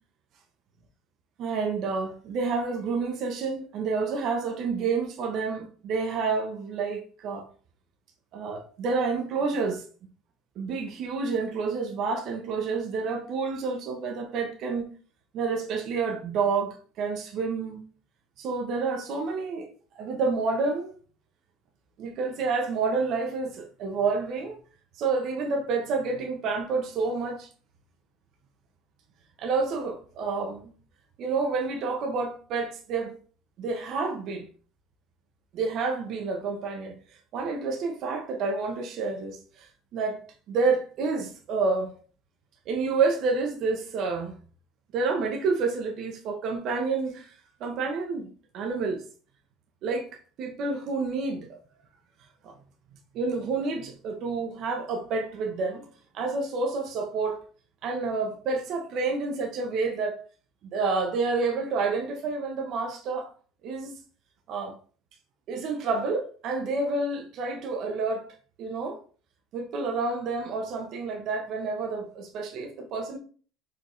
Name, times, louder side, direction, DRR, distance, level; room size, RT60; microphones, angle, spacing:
voice 1, 1.4-7.5 8.3-9.8 10.6-14.9 15.3-17.8 18.4-19.7 19.9-20.9 22.0-24.5 25.0-27.5 29.4-30.7 31.2-33.2 33.6-34.5 35.5-37.0 37.3-40.2 40.5-41.9 42.7-44.4 44.9-47.3 47.6-49.0 49.8-50.1 50.4-51.6 52.4-52.5 53.1-55.9 56.1-57.4 57.8-60.2 60.6-63.3 63.6-64.0 64.5-64.8 65.5-68.3 68.6-69.0 69.5-73.2, right 4 dB, 50° right, 0.9 m, -29 dB
4.8 x 3.5 x 3.1 m
cardioid pair, 150°, 0 cm